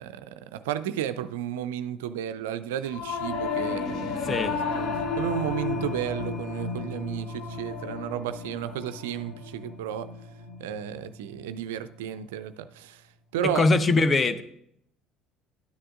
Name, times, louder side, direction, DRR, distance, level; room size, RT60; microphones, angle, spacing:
voice 1, 0.0-4.4 4.8-10.1 10.6-13.0 13.3-13.7, right 10 dB, 75° right, 0.3 m, -33 dB
Singing / Musical instrument, 2.9-12.4, left 4 dB, 60° left, 0.8 m, -33 dB
voice 2, 4.2-4.6 13.4-14.4, left 3 dB, 30° left, 0.8 m, -22 dB
12.5 x 10.0 x 2.4 m
hypercardioid pair, 55°, 0 cm